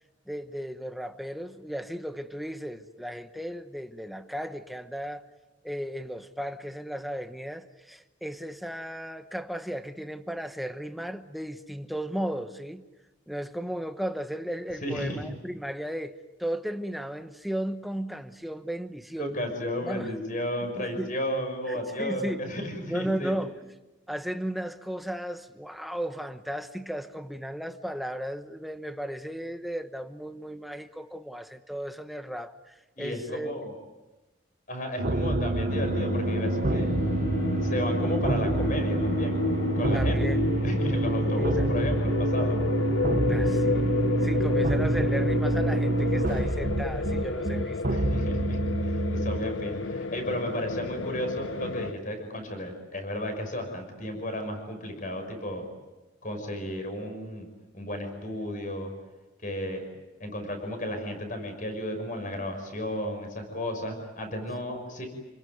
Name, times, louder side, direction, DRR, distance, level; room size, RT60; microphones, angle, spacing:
voice 1, 0.3-5.2 5.6-12.8 13.3-19.4 19.8-20.1 20.6-21.2 21.7-22.5 22.9-23.6 24.1-33.7 39.9-40.4 41.4-41.7 43.3-43.9 44.2-47.8, equal, ahead, 1.0 m, -35 dB
voice 2, 14.8-15.3 19.2-23.4 33.0-33.7 34.7-36.9 37.5-39.4 39.8-40.2 40.6-42.6 47.9-55.6 56.2-57.5 57.7-58.9 59.4-59.8 60.2-65.1, left 1 dB, 40° left, 6.1 m, -33 dB
sound 1, 35.0-49.4, right 2 dB, 45° right, 0.9 m, -27 dB
sound 2, 35.7-51.9, left 3 dB, 75° left, 0.8 m, -31 dB
28.5 x 21.5 x 9.3 m
head